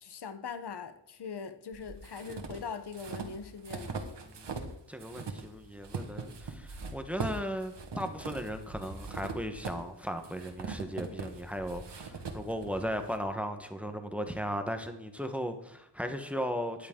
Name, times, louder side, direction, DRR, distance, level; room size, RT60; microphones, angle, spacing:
voice 1, 0.0-4.0, left 5 dB, 60° left, 10 dB, 1.1 m, -41 dB
sound 1, 1.7-4.7 5.0-13.2, right 4 dB, 70° right, 1.7 m, -41 dB
voice 2, 4.9-16.9, equal, 5° right, 6 dB, 1.1 m, -36 dB
13.5 x 10.5 x 3.8 m, 0.75 s
wide cardioid pair, 130°, 44 cm